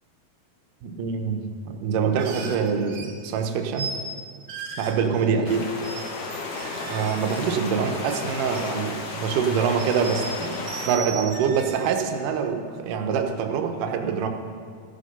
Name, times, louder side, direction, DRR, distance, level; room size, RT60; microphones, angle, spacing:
voice 1, 0.8-3.9 4.8-5.7 6.9-14.3, right 6 dB, 85° right, 5 dB, 2.4 m, -25 dB
sound 1, 2.2-3.2 3.7-4.1 4.5-5.5 5.8-6.0 6.3-8.2 8.5-9.4 9.8-12.0, right 4 dB, 60° right, 1.4 m, -37 dB
sound 2, 5.4-10.9, left 3 dB, 70° left, 1.0 m, -33 dB
15.0 x 6.6 x 5.4 m, 2.1 s
omnidirectional pair, 3.7 m